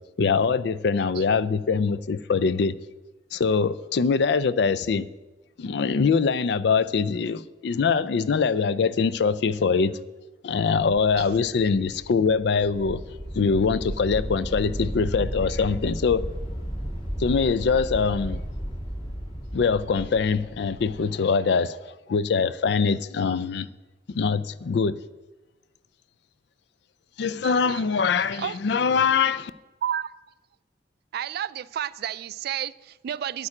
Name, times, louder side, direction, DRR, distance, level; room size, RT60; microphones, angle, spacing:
voice 1, 0.2-2.7 3.3-5.1 5.6-10.0 10.4-13.0 13.3-16.3 17.2-18.4 19.5-23.7 24.1-25.0 27.2-29.5, left 5 dB, 65° left, 0.4 m, -23 dB
sound 1, 10.6-21.0, equal, 35° left, 1.9 m, -34 dB
voice 2, 27.4-27.8 28.3-28.6 29.8-30.1 31.1-33.5, right 10 dB, 60° right, 0.3 m, -31 dB
9.8 x 8.7 x 4.9 m
head